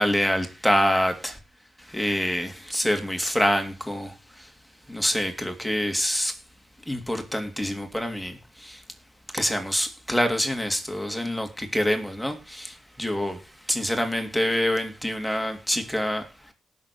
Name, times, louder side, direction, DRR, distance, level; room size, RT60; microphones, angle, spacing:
voice 1, 0.0-1.4 1.8-4.5 4.9-6.4 6.9-8.8 9.3-13.4 13.7-16.5, equal, ahead, 3.1 m, -26 dB
19.0 x 7.0 x 4.6 m
cardioid pair, 80°, 0 cm